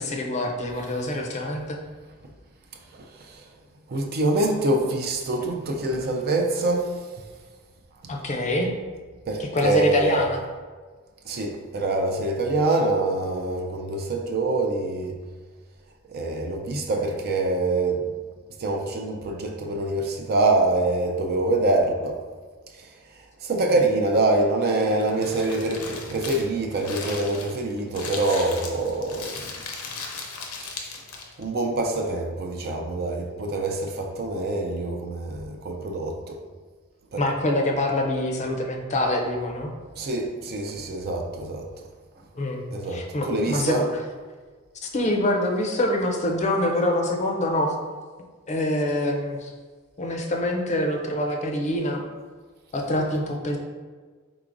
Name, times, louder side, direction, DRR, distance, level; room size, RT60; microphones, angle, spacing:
voice 1, 0.0-1.8 8.1-8.7 9.5-10.4 37.2-39.7 42.3-42.6 42.9-43.8 44.9-47.8 48.5-49.5 50.0-52.0 52.7-53.6, left 1 dB, 30° left, 0.5 m, -25 dB
voice 2, 2.9-3.4 3.9-7.0 9.3-10.2 11.3-15.2 16.1-18.1 18.6-22.2 22.7-22.9 23.4-29.5 31.4-36.4 37.1-37.3 40.0-41.7 42.7-43.9, right 2 dB, 45° right, 0.5 m, -25 dB
Crumpling crinkling, 24.7-31.4, left 4 dB, 90° left, 0.7 m, -37 dB
4.7 x 3.8 x 2.5 m
head